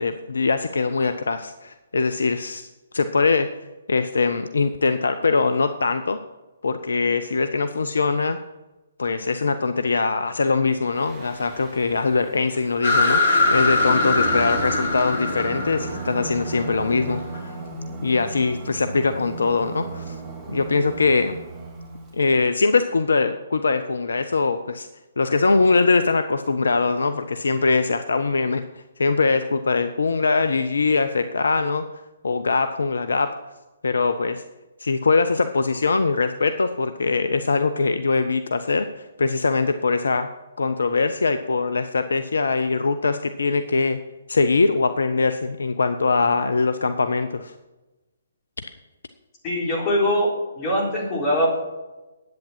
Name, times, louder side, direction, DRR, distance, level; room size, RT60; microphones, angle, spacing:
voice 1, 0.0-3.5 3.9-6.2 6.6-8.4 9.0-17.5 18.0-20.2 20.5-21.4 22.1-24.9 25.2-28.7 29.0-31.9 32.2-33.4 33.8-34.4 34.8-40.3 40.6-44.0 44.3-47.5, left 4 dB, 65° left, 10 dB, 0.6 m, -22 dB
Singing, 10.9-22.2, right 3 dB, 15° right, 2.0 m, -36 dB
sound 1, 12.8-17.4, left 2 dB, 50° left, 2.6 m, -22 dB
voice 2, 49.4-51.6, equal, 25° left, -2 dB, 3.9 m, -22 dB
10.5 x 8.6 x 5.6 m, 1.1 s
figure-of-eight pair, 135°, 0 cm